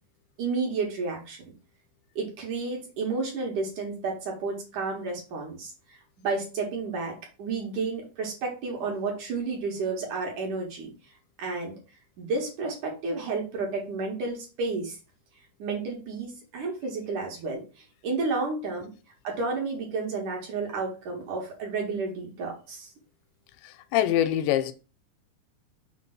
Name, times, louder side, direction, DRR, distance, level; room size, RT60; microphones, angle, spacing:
voice 1, 0.4-1.4 2.2-5.7 6.2-7.1 7.4-10.9 11.4-11.7 12.2-14.9 15.6-17.6 18.0-18.9 19.2-22.9, right 4 dB, 55° right, 2.7 m, -31 dB
voice 2, 23.6-24.7, left 11 dB, 80° left, 2.9 m, -24 dB
6.6 x 3.6 x 6.0 m
omnidirectional pair, 5.2 m